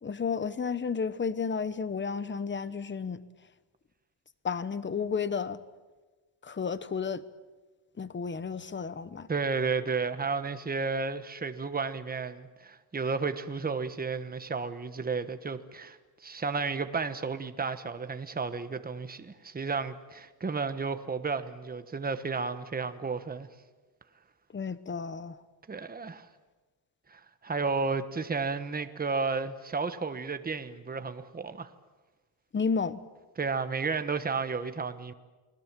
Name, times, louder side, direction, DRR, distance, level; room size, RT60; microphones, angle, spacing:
voice 1, 0.0-3.2 4.4-5.6 6.4-7.2 8.0-9.3 24.5-25.4 32.5-33.0, left 5 dB, 25° left, 1.0 m, -32 dB
voice 2, 9.3-23.5 25.7-26.3 27.1-31.7 33.4-35.1, right 4 dB, 20° right, 1.2 m, -32 dB
29.0 x 21.5 x 7.5 m
wide cardioid pair, 155°, 46 cm